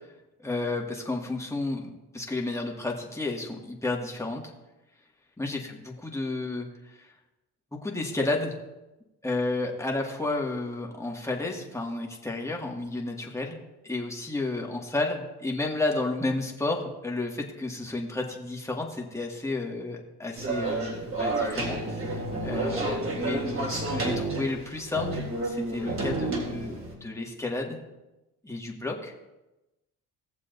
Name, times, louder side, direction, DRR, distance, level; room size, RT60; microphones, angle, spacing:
voice 1, 0.4-4.5 5.4-6.7 6.9-7.1 7.7-8.5 9.2-27.8 28.4-29.1, left 2 dB, 10° left, -1 dB, 2.0 m, -32 dB
sound 1, 20.4-26.9, right 2 dB, 40° right, 3.5 m, -30 dB
18.5 x 7.2 x 2.7 m, 1.0 s
supercardioid pair, 80°, 35 cm